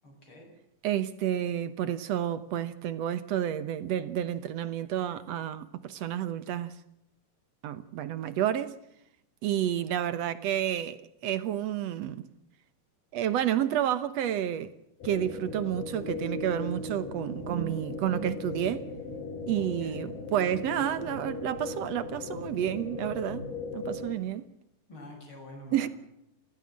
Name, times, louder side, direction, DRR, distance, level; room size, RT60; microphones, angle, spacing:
voice 1, 0.0-0.5 19.5-20.0 24.9-25.9, left 1 dB, 30° left, 8.4 m, -47 dB
voice 2, 0.8-6.7 7.6-8.8 9.4-12.3 13.1-14.7 15.0-18.9 19.5-23.4 23.7-24.5 25.7-25.9, right 11 dB, 70° right, 1.6 m, -30 dB
sound 1, 15.0-24.1, left 3 dB, 90° left, 4.9 m, -38 dB
29.5 x 15.0 x 7.5 m
omnidirectional pair, 4.4 m